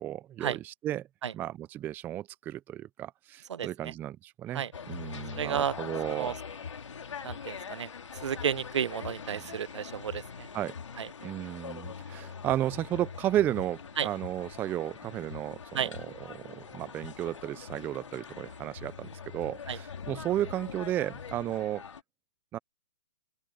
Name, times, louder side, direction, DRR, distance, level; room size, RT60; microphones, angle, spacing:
voice 1, 0.0-1.1 1.3-6.3 9.3-9.4 10.5-10.7 11.2-21.8 22.5-22.6, right 12 dB, 15° right, 0.4 m, -33 dB
voice 2, 3.5-3.9 4.5-4.7 5.3-5.7 6.1-6.3 7.2-7.9 8.2-10.5 11.0-11.1 14.0-14.1 15.7-15.9 19.7-19.8, right 8 dB, 75° right, 0.9 m, -32 dB
sound 1, 4.7-22.0, left 6 dB, 90° left, 2.7 m, -43 dB
open air
hypercardioid pair, 145°, 15 cm